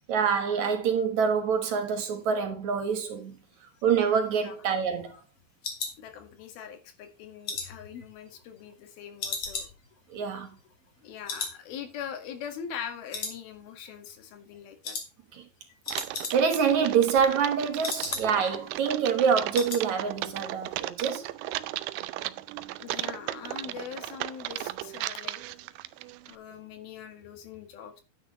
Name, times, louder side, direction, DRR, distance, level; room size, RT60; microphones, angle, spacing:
voice 1, 0.1-3.4 3.8-5.2 10.1-10.5 15.3-15.4 16.3-21.3, right 6 dB, 60° right, 2.4 m, -26 dB
sound 1, 3.9-6.7 7.1-8.8 9.2-11.0 11.3-11.6 11.9-12.0 12.4-12.9 13.1-13.9 14.2-14.5 14.8-15.1 15.4-15.5 15.7-16.7 17.0-18.6 18.9-19.0 19.3-19.9 20.2-20.4 20.7-20.8, left 4 dB, 45° left, 3.3 m, -37 dB
voice 2, 6.0-9.7 11.0-15.0 22.8-25.4 26.3-28.0, left 8 dB, 80° left, 3.5 m, -42 dB
Typing, 15.9-26.4, right 16 dB, 80° right, 2.1 m, -36 dB
11.0 x 9.6 x 3.1 m
omnidirectional pair, 4.2 m